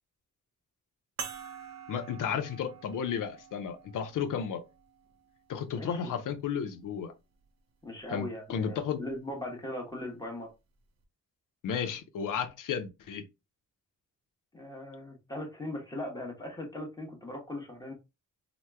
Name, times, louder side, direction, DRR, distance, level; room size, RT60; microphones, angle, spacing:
sound 1, 1.2-6.0 6.8-6.9 9.0-9.1, right 7 dB, 55° right, 0.6 m, -46 dB
voice 1, 1.9-4.6 5.5-7.1 8.1-9.0 11.6-13.2, left 7 dB, 85° left, 0.6 m, -33 dB
voice 2, 5.7-6.1 7.8-10.5 14.5-17.9, left 1 dB, 10° left, 1.0 m, -39 dB
2.9 x 2.1 x 3.4 m
wide cardioid pair, 130°, 31 cm